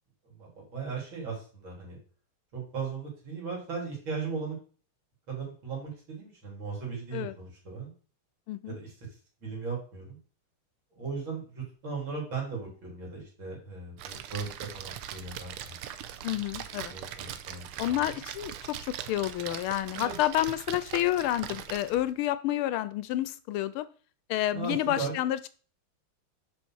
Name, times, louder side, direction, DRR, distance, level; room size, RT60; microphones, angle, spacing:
voice 1, 0.2-2.0 2.5-4.6 5.3-7.9 8.7-8.9 9.4-10.2 10.9-14.5 14.7-15.8 16.9-18.1 19.9-20.1 24.5-25.2, right 5 dB, 65° right, -2 dB, 4.4 m, -37 dB
Splash splatter, 14.0-22.1, right 10 dB, 90° right, 1.6 m, -41 dB
voice 2, 16.2-16.9 17.8-18.8 19.1-23.8 24.3-25.5, left 13 dB, 80° left, 15 dB, 1.4 m, -29 dB
6.4 x 5.7 x 6.2 m, 0.40 s
omnidirectional pair, 2.4 m